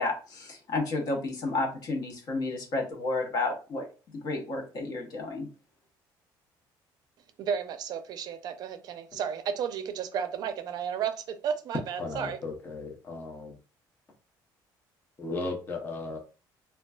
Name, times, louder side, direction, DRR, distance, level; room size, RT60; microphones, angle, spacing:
voice 1, 0.0-3.9 4.2-5.5, left 3 dB, 55° left, 0.9 m, -31 dB
voice 2, 7.4-12.4, right 7 dB, 55° right, 0.4 m, -33 dB
voice 3, 12.0-13.6 15.2-16.2, left 3 dB, 25° left, 0.6 m, -36 dB
3.7 x 2.3 x 2.3 m
cardioid pair, 135°, 8 cm